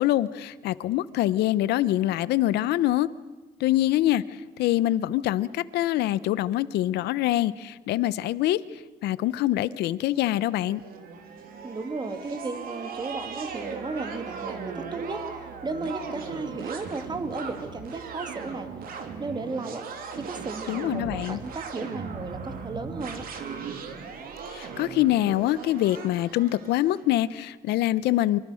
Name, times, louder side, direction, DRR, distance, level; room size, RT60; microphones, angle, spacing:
voice 1, 0.0-3.1 3.6-10.8 20.7-21.4 24.5-28.4, left 14 dB, 80° left, 17 dB, 0.9 m, -25 dB
sound 1, 10.2-27.2, right 5 dB, 60° right, 3.2 m, -38 dB
voice 2, 11.6-15.2 15.6-18.7 19.2-19.9 20.2-23.2, right 3 dB, 25° right, 8 dB, 2.4 m, -34 dB
25.0 x 24.5 x 6.5 m, 1.2 s
cardioid pair, 110°, 17 cm